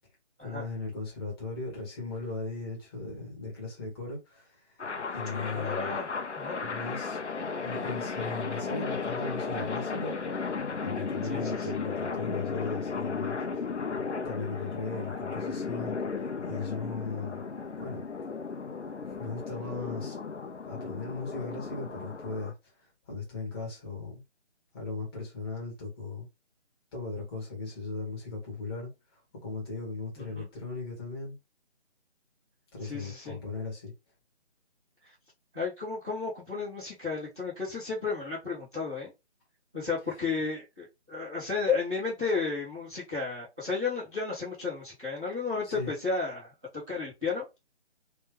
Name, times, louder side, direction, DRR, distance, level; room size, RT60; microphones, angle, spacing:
voice 1, 0.4-6.0 6.6-7.2 7.6-10.2 10.8-13.4 14.2-17.4 17.7-18.0 19.1-20.2 20.6-24.2 24.7-26.3 26.9-31.4 32.7-33.9 45.6-45.9, left 3 dB, 20° left, 1.6 m, -38 dB
sound 1, 4.8-22.5, left 4 dB, 75° left, 0.8 m, -35 dB
voice 2, 5.5-6.1 6.3-6.6 11.3-11.7 14.9-15.1 30.2-30.5 32.8-33.4 35.5-39.1 39.7-46.5 46.9-47.6, left 4 dB, 5° right, 0.6 m, -33 dB
3.5 x 3.1 x 3.3 m
figure-of-eight pair, 155°, 34 cm